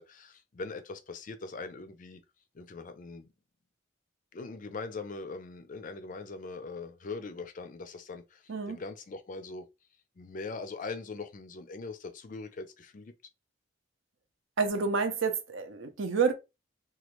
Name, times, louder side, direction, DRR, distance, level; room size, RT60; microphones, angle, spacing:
voice 1, 0.0-2.2 2.5-3.3 4.3-9.7 10.2-13.1, left 3 dB, 40° left, 0.4 m, -41 dB
voice 2, 14.6-16.3, right 5 dB, 70° right, 0.6 m, -29 dB
3.0 x 2.3 x 2.9 m
head